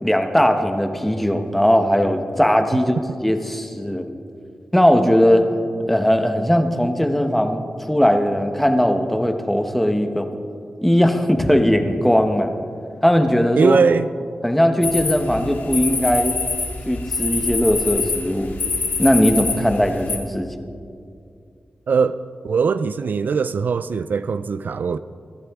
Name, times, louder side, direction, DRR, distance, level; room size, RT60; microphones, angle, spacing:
voice 1, 0.0-3.0 3.2-4.1 4.7-5.5 5.9-7.6 7.9-10.3 10.8-12.5 13.0-13.8 14.4-16.3 16.9-18.5 19.0-20.5, equal, 5° left, 0.9 m, -18 dB
voice 2, 13.6-14.1 21.9-22.2 22.4-25.0, right 5 dB, 60° right, 0.3 m, -20 dB
sound 1, 14.8-20.2, left 4 dB, 80° left, 1.9 m, -25 dB
22.5 x 14.5 x 3.5 m
wide cardioid pair, 170°, 3 cm